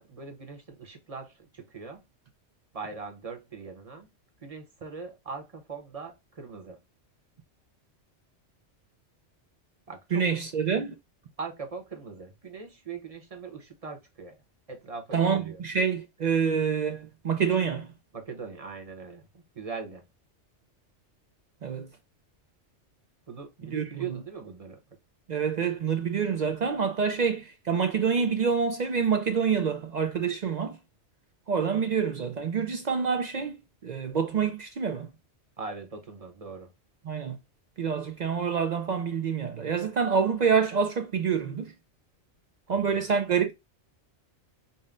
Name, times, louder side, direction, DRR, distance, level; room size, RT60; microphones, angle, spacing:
voice 1, 0.0-2.0 2.7-4.1 4.4-6.8 9.9-10.3 11.4-14.3 14.7-15.6 18.1-20.0 23.3-24.8 35.6-36.7 42.7-43.1, right 5 dB, 35° right, 0.9 m, -41 dB
voice 2, 10.1-10.9 15.1-17.9 21.6-21.9 23.7-23.9 25.3-30.8 31.5-33.6 33.8-35.1 37.1-37.4 37.8-41.7 42.7-43.5, right 6 dB, 60° right, 0.4 m, -27 dB
5.4 x 2.1 x 2.5 m
omnidirectional pair, 1.2 m